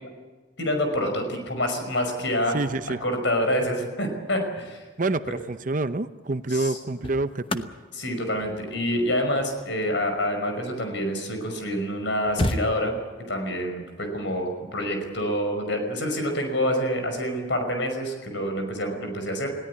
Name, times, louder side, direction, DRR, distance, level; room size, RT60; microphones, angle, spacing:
voice 1, 0.6-2.6 3.0-4.8 6.5-6.7 7.9-12.9 13.3-19.5, equal, 70° left, 5 dB, 5.6 m, -27 dB
voice 2, 2.5-3.0 5.0-7.7, right 2 dB, 40° right, 12 dB, 0.7 m, -27 dB
sound 1, 5.4-5.7 6.6-11.2 11.7-11.8 12.0-13.3 15.0-15.2, left 1 dB, 25° left, 0.9 m, -34 dB
20.5 x 17.0 x 9.7 m, 1.3 s
head